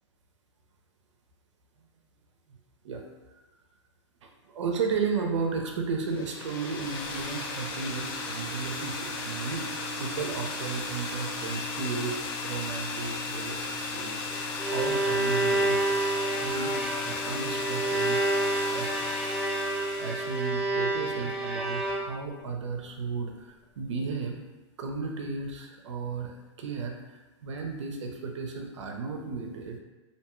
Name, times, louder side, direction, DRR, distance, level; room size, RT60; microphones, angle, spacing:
voice 1, 4.2-9.6 10.0-12.2 12.4-15.9 16.4-16.8 17.0-18.2 18.5-19.2 20.0-24.4 24.8-29.8, right 5 dB, 75° right, 2 dB, 0.5 m, -34 dB
sound 1, 6.1-20.5, left 3 dB, 45° left, 0.4 m, -35 dB
Bowed string instrument, 14.3-22.4, right 2 dB, 5° right, 0.5 m, -29 dB
2.6 x 2.2 x 2.9 m, 1.1 s
hypercardioid pair, 125°, 15 cm